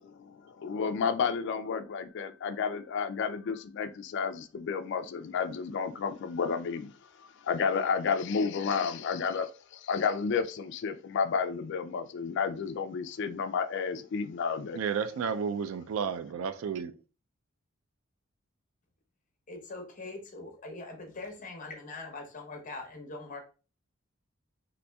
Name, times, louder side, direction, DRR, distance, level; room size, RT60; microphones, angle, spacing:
voice 1, 0.0-14.8, left 6 dB, 60° left, 0.3 m, -31 dB
voice 2, 14.7-16.9, right 6 dB, 80° right, 0.3 m, -32 dB
voice 3, 19.5-23.4, left 3 dB, 40° left, 0.8 m, -42 dB
4.1 x 2.6 x 2.2 m
head